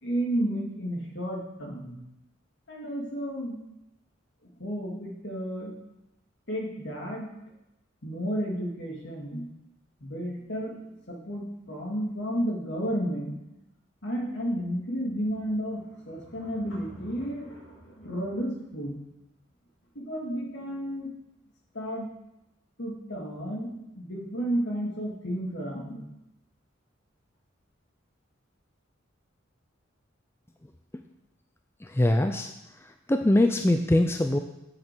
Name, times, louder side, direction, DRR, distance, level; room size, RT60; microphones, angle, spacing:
voice 1, 0.0-2.0 2.7-3.6 4.6-5.7 6.5-7.3 8.0-9.5 10.0-13.4 14.0-19.0 19.9-21.1 21.7-22.1 22.8-26.0, equal, 65° left, -2 dB, 2.7 m, -32 dB
voice 2, 31.9-32.5 33.1-34.4, left 1 dB, 15° left, 5 dB, 0.5 m, -22 dB
8.7 x 6.6 x 6.1 m, 0.89 s
head